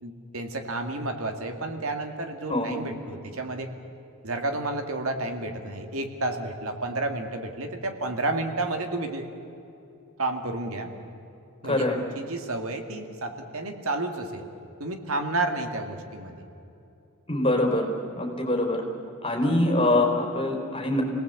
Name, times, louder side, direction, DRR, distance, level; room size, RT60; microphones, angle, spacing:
voice 1, 0.0-3.7 4.2-9.3 10.2-10.9 11.6-14.4 14.8-16.4, right 2 dB, 70° right, 5 dB, 2.2 m, -31 dB
voice 2, 11.6-12.0 17.3-17.9 18.2-18.8 19.2-21.0, left 1 dB, 25° left, 0 dB, 4.6 m, -24 dB
29.0 x 18.5 x 8.3 m, 2.8 s
head